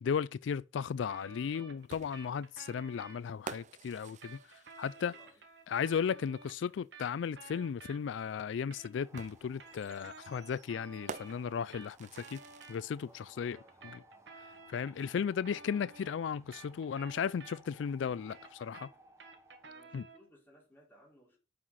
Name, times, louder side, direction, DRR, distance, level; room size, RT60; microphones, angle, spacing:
voice 1, 0.0-5.1 5.7-12.4 12.7-13.6 13.9-14.0 14.7-18.9 19.9-20.0, left 7 dB, 85° left, 0.3 m, -35 dB
sound 1, 1.1-3.2 3.9-8.3 8.6-12.8 13.5-17.9 18.2-20.3, right 3 dB, 70° right, 1.7 m, -53 dB
sound 2, 1.9-5.5 7.0-7.1 9.2-13.1, right 6 dB, 40° right, 0.4 m, -49 dB
voice 2, 5.0-5.4 13.0-14.1 19.6-21.4, equal, 10° left, 4.6 m, -62 dB
sound 3, 8.9-19.7, right 1 dB, 15° right, 1.2 m, -62 dB
9.6 x 5.8 x 4.1 m
head